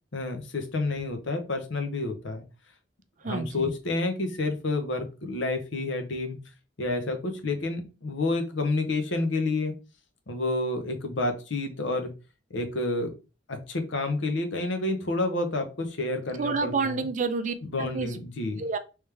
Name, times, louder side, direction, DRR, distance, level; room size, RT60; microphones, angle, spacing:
voice 1, 0.1-2.4 3.2-6.4 6.8-9.7 10.3-12.1 12.5-13.1 13.5-17.1 17.6-18.6, left 2 dB, 70° left, 0.8 m, -29 dB
voice 2, 3.2-3.7 16.4-18.1 18.6-18.8, right 4 dB, 40° right, 0.4 m, -29 dB
3.3 x 3.2 x 3.3 m
head